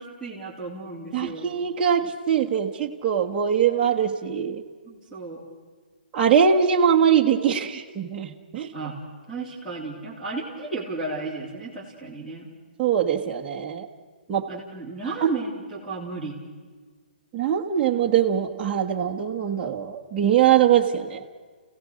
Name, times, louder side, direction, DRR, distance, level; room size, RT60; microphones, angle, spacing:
voice 1, 0.0-1.4 4.8-5.4 8.7-8.9 9.3-12.5 14.5-16.4, right 3 dB, 5° left, -6 dB, 3.4 m, -33 dB
voice 2, 1.1-4.6 6.1-8.7 12.8-13.9 14.3-14.5 15.2-15.3 17.3-21.2, right 8 dB, 15° right, -2 dB, 1.4 m, -22 dB
29.5 x 16.5 x 6.5 m, 1.5 s
hypercardioid pair, 160°, 5 cm